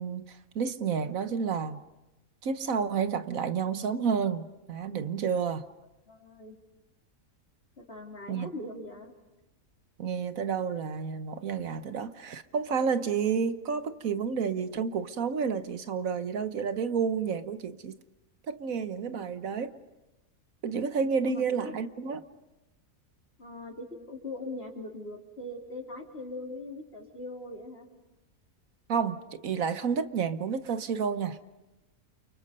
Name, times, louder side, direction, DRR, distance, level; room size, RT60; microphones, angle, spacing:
voice 1, 0.0-1.8 2.4-5.7 8.3-8.5 10.0-18.0 18.5-19.7 20.6-22.2 28.9-31.4, right 6 dB, 75° right, 1.5 m, -30 dB
voice 2, 6.1-6.6 7.8-9.1 21.2-21.7 23.4-27.9, left 2 dB, 45° left, 3.8 m, -41 dB
29.5 x 29.0 x 5.5 m
omnidirectional pair, 1.4 m